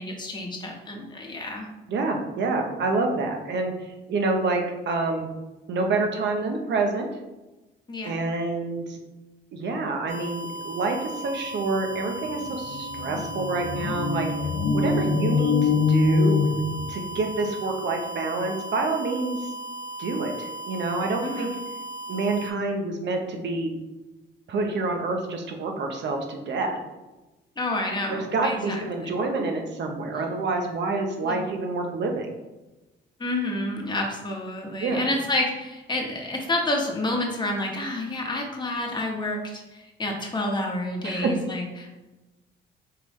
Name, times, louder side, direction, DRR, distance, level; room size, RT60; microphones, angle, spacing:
voice 1, 0.0-1.7 7.9-8.1 21.2-21.5 27.6-29.2 31.2-31.5 33.2-41.9, left 1 dB, 20° left, 0 dB, 1.1 m, -29 dB
voice 2, 1.9-5.3 5.7-7.1 8.0-9.0 9.5-14.3 14.7-16.4 16.9-19.4 20.0-21.5 22.1-23.7 24.5-26.8 28.1-32.3 34.8-35.0 41.0-41.3, right 3 dB, 65° right, 3 dB, 0.9 m, -27 dB
sound 1, 10.1-22.5, right 2 dB, 40° right, 1.4 m, -37 dB
sound 2, 11.9-12.0 12.3-17.3, left 4 dB, 55° left, 0.5 m, -24 dB
4.7 x 3.5 x 3.1 m, 1.1 s
cardioid pair, 90°, 20 cm